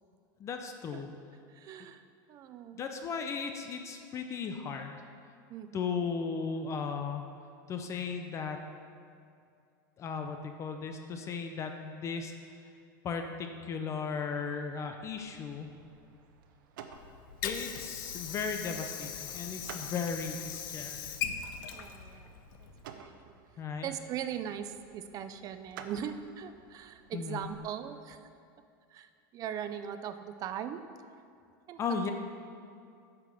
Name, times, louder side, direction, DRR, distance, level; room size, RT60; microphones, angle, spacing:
voice 1, 0.4-1.1 2.7-5.0 5.7-7.2 7.7-8.6 10.0-12.3 12.6-12.7 13.0-15.7 17.4-21.1 23.6-23.9 27.1-27.5 31.8-32.1, left 5 dB, 25° left, 5 dB, 0.6 m, -36 dB
voice 2, 1.5-2.0 2.3-2.8 5.5-5.9 21.7-23.3 23.8-28.3 28.9-30.8 31.7-32.1, right 9 dB, 35° right, 10 dB, 0.5 m, -40 dB
sound 1, 15.0-27.6, right 7 dB, 75° right, 0.8 m, -54 dB
Water / Sink (filling or washing), 16.9-22.9, left 8 dB, 80° left, 0.8 m, -40 dB
8.1 x 5.9 x 6.7 m, 2.4 s
supercardioid pair, 140°, 11 cm